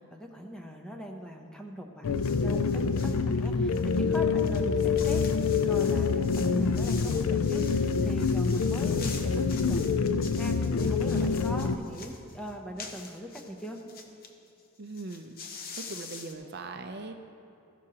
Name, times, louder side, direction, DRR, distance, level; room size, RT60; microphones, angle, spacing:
voice 1, 0.0-5.2 5.7-10.0 10.3-13.8, equal, 5° left, 1 dB, 0.7 m, -41 dB
sound 1, 2.0-11.7, left 5 dB, 75° left, 0.4 m, -26 dB
sound 2, 2.1-3.2 3.7-14.3 14.6-14.7 14.9-16.3, left 5 dB, 40° left, 0.8 m, -45 dB
voice 2, 14.8-15.4 15.8-17.2, right 3 dB, 50° right, 6 dB, 0.5 m, -40 dB
14.0 x 11.0 x 2.9 m, 2.7 s
head